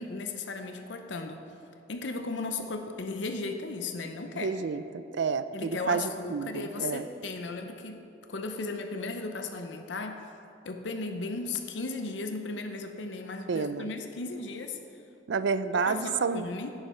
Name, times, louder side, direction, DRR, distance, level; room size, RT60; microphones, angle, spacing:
voice 1, 0.0-1.4 1.9-4.5 5.5-8.0 8.3-10.2 10.6-14.8 15.7-16.7, left 3 dB, 75° left, 6 dB, 0.7 m, -36 dB
voice 2, 4.3-7.1 13.5-13.9 15.3-16.5, right 5 dB, 70° right, 13 dB, 0.4 m, -30 dB
10.5 x 9.8 x 4.4 m, 2.7 s
head